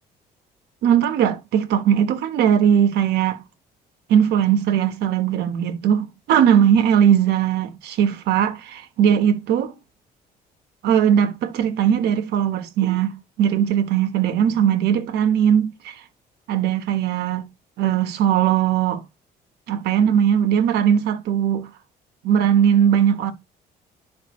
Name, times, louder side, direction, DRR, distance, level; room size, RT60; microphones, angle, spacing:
voice 1, 0.8-3.4 4.1-9.7 10.8-16.0 16.5-17.5 17.8-19.0 19.7-21.7 22.2-23.3, right 9 dB, 75° right, 1.2 m, -19 dB
10.0 x 5.2 x 3.1 m
cardioid pair, 110°, 17 cm